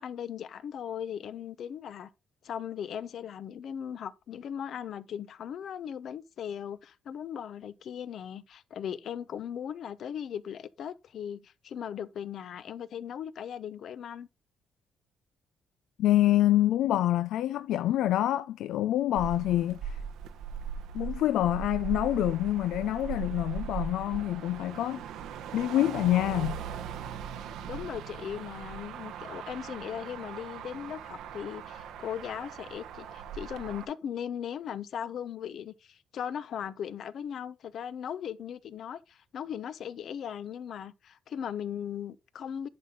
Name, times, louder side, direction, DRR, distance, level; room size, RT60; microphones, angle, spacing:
voice 1, 0.0-2.1 2.4-14.3 27.6-42.7, left 9 dB, 65° left, 0.7 m, -38 dB
voice 2, 16.0-20.0 20.9-25.0 25.5-26.6, left 13 dB, 85° left, 0.4 m, -26 dB
Motor vehicle (road), 19.2-33.8, right 7 dB, 85° right, 0.9 m, -39 dB
10.5 x 4.3 x 3.8 m
cardioid pair, 90°, 0 cm